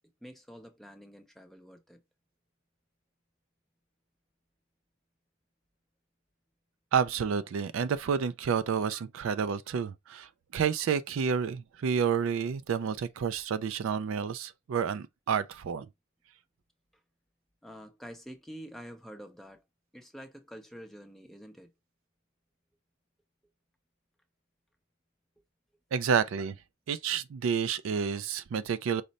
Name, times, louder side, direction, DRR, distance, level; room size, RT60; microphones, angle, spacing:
voice 1, 0.2-2.0 17.6-19.6 19.9-21.7, equal, ahead, 0.6 m, -47 dB
voice 2, 6.9-15.9 25.9-26.6 26.9-29.0, right 6 dB, 65° right, 0.3 m, -30 dB
5.0 x 2.1 x 4.0 m
head